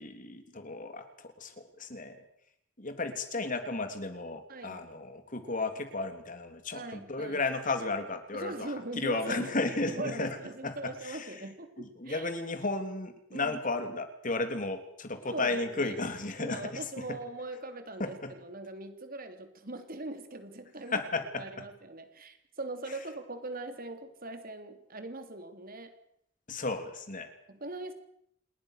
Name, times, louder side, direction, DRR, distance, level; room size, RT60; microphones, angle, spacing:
voice 1, 0.0-2.3 2.8-10.4 10.6-11.4 11.8-17.2 18.0-18.3 20.9-21.6 22.9-23.0 26.5-27.4, left 3 dB, 45° left, 7 dB, 3.4 m, -34 dB
voice 2, 4.5-4.8 6.7-7.4 8.3-9.6 9.9-12.3 13.3-13.6 15.3-15.9 16.4-21.0 21.4-25.9 27.5-27.9, right 2 dB, 50° right, 7 dB, 3.6 m, -41 dB
28.0 x 20.5 x 6.8 m, 0.73 s
head